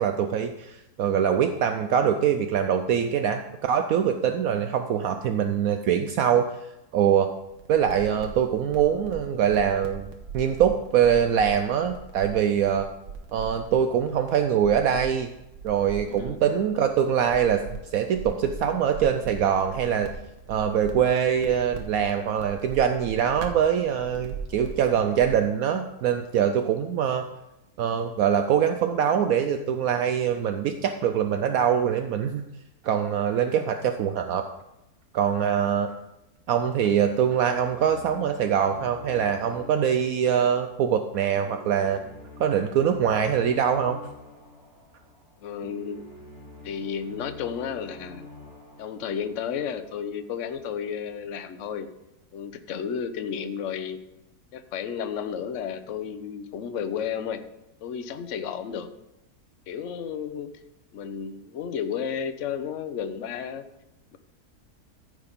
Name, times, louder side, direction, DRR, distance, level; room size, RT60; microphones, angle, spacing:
voice 1, 0.0-6.5 6.9-7.3 7.7-10.1 10.3-12.9 13.3-15.3 15.6-20.1 20.5-27.2 27.8-32.4 32.8-34.5 35.1-35.9 36.5-42.0 42.4-44.0, right 8 dB, 70° right, 7 dB, 1.0 m, -23 dB
sound 1, 7.5-25.4, right 5 dB, 85° right, 1.7 m, -41 dB
sound 2, 37.0-50.1, left 1 dB, 35° right, 3.6 m, -47 dB
voice 2, 45.4-46.0 46.6-48.2 48.8-51.9 52.3-54.0 54.5-57.4 57.8-58.9 59.7-60.5 60.9-63.6 64.1-64.2, left 7 dB, 60° left, 10 dB, 1.0 m, -32 dB
14.0 x 4.9 x 5.2 m, 0.92 s
omnidirectional pair, 1.7 m